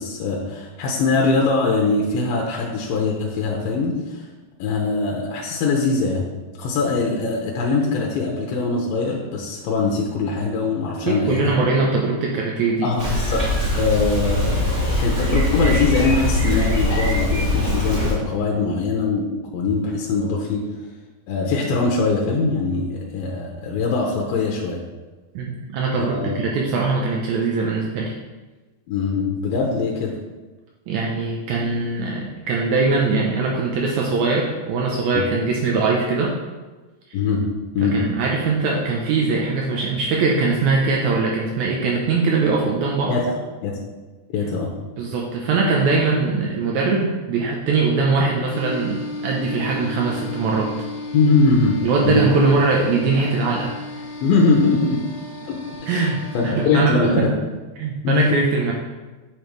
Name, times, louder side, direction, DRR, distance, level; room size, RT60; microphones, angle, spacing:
voice 1, 0.0-4.2 4.6-6.2 6.6-11.6 12.8-13.5 13.7-20.7 21.3-24.8 26.0-26.4 28.9-30.2 35.1-35.2 37.1-37.5 37.7-38.0 43.1-43.8 44.3-44.7 51.1-52.3 54.2-55.0 55.5-57.3 58.0-58.4, left 4 dB, 80° left, -1 dB, 2.6 m, -22 dB
voice 2, 11.1-12.9 25.3-28.1 30.9-36.3 37.8-43.2 45.0-50.7 51.8-53.7 55.9-57.3 57.8-58.7, right 4 dB, 90° right, -1 dB, 1.6 m, -21 dB
Bicycle, 13.0-18.1, left 1 dB, 45° right, 0.7 m, -21 dB
sound 1, 48.5-56.5, left 2 dB, 50° left, 2.7 m, -34 dB
9.1 x 5.0 x 3.1 m, 1.2 s
omnidirectional pair, 4.2 m